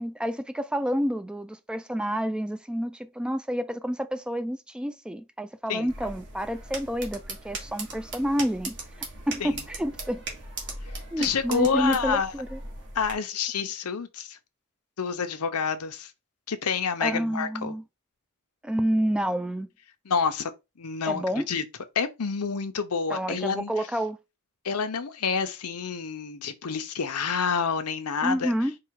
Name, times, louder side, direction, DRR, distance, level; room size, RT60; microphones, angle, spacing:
voice 1, 0.0-10.2 11.1-12.6 17.0-17.8 18.6-19.7 21.0-21.5 23.1-24.2 28.2-28.7, equal, 5° right, 0.3 m, -29 dB
sound 1, 5.9-13.1, right 3 dB, 55° right, 1.7 m, -39 dB
voice 2, 11.2-12.3 12.9-14.4 15.0-16.1 16.5-17.7 20.1-20.5 20.8-21.6 21.9-23.7 24.6-28.5, left 5 dB, 90° left, 0.7 m, -28 dB
4.7 x 2.4 x 4.6 m
head